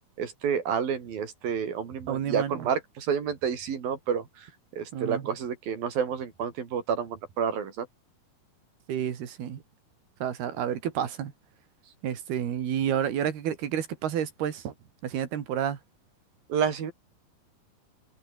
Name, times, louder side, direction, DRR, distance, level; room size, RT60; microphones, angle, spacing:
voice 1, 0.2-7.9 16.5-16.9, right 7 dB, 70° right, 4.9 m, -30 dB
voice 2, 2.1-2.7 4.9-5.2 8.9-9.6 10.2-11.3 12.0-14.7 15.0-15.8, right 9 dB, 90° right, 4.5 m, -30 dB
omnidirectional pair, 4.4 m